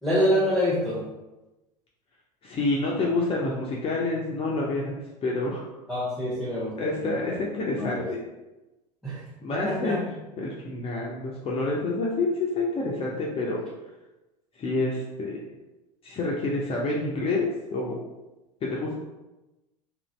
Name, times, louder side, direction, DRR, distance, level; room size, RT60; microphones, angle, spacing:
voice 1, 0.0-1.0 5.9-7.2 7.8-8.0 9.0-9.2 9.5-10.0, equal, ahead, -9 dB, 1.0 m, -26 dB
voice 2, 2.4-4.9 5.2-5.6 6.8-8.2 9.4-10.0 10.4-13.6 14.6-15.4 16.0-18.0 18.6-18.9, left 2 dB, 25° left, -3 dB, 0.6 m, -28 dB
3.0 x 2.6 x 3.1 m, 1.0 s
figure-of-eight pair, 80°, 21 cm